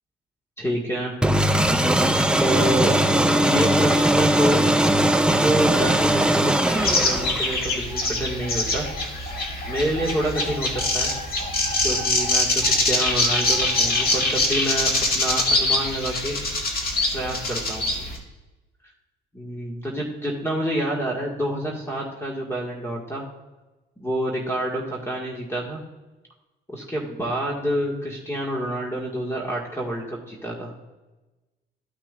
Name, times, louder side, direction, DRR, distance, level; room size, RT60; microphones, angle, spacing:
voice 1, 0.6-1.1 2.4-2.9 3.3-4.6 5.2-8.8 9.7-11.1 11.8-14.9 15.1-16.4 17.1-18.2 19.3-23.2 24.0-25.8 26.7-30.7, right 1 dB, 15° left, -2 dB, 1.8 m, -28 dB
sound 1, 1.2-7.7, right 1 dB, 5° right, 0.6 m, -20 dB
sound 2, 6.8-18.2, left 2 dB, 50° left, 1.9 m, -24 dB
13.5 x 5.9 x 2.5 m, 1.1 s
cardioid pair, 90°, 20 cm